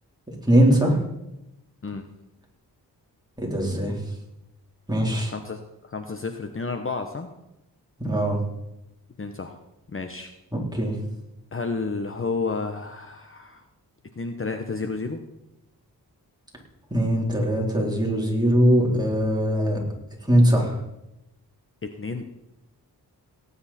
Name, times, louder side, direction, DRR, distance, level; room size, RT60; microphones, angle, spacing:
voice 1, 0.5-1.0 3.4-4.0 4.9-5.3 8.0-8.4 10.5-11.0 16.9-19.8 20.3-20.8, equal, 10° right, -2 dB, 3.8 m, -21 dB
voice 2, 5.3-7.3 9.2-9.6 9.9-10.3 11.5-13.6 14.1-15.2 21.8-22.2, left 4 dB, 35° left, 6 dB, 1.1 m, -31 dB
18.0 x 9.6 x 4.3 m, 0.90 s
wide cardioid pair, 85°, 39 cm